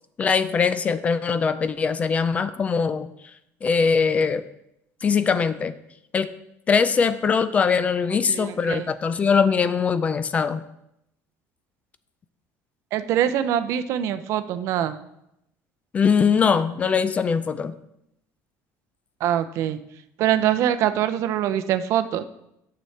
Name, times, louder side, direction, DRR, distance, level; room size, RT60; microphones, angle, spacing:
voice 1, 0.2-3.1 3.6-4.4 5.0-5.7 6.1-6.3 6.7-10.6 15.9-17.7, left 5 dB, 25° left, 13 dB, 0.3 m, -21 dB
voice 2, 8.3-8.9 12.9-15.0 19.2-19.8 20.2-22.2, right 10 dB, 55° right, 10 dB, 0.6 m, -23 dB
9.2 x 6.8 x 3.3 m, 0.81 s
cardioid pair, 155°, 6 cm